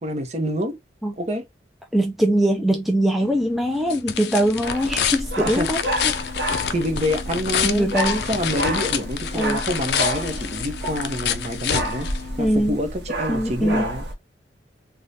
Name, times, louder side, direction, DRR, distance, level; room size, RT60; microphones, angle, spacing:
voice 1, 0.0-0.8 1.2-1.4 5.3-5.7 6.7-7.9 8.3-12.1 12.4-14.0, equal, 40° right, 0.8 m, -27 dB
voice 2, 1.9-6.1 7.6-8.2 9.3-9.6 12.4-12.8 13.3-13.8, right 1 dB, ahead, 0.4 m, -22 dB
sound 1, 3.2-12.7, left 8 dB, 65° left, 0.5 m, -28 dB
sound 2, 4.6-14.1, right 1 dB, 70° right, 0.9 m, -30 dB
3.2 x 2.3 x 4.0 m
head